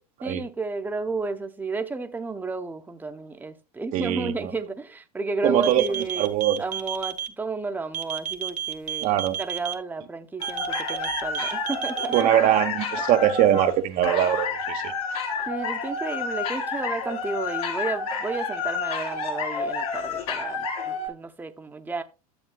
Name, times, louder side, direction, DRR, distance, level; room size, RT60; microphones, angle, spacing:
voice 1, 0.2-6.3 6.6-9.1 9.4-12.1 15.5-22.0, right 3 dB, 10° right, 0.9 m, -32 dB
voice 2, 3.9-4.5 5.4-5.8 6.2-6.6 9.0-9.4 12.1-14.9, right 12 dB, 45° right, 0.9 m, -22 dB
sound 1, 5.6-7.3 7.9-9.7 10.4-12.2, right 10 dB, 85° right, 0.8 m, -30 dB
sound 2, 10.4-21.1, left 4 dB, 65° left, 2.5 m, -30 dB
12.0 x 7.3 x 2.3 m
hypercardioid pair, 90°, 20 cm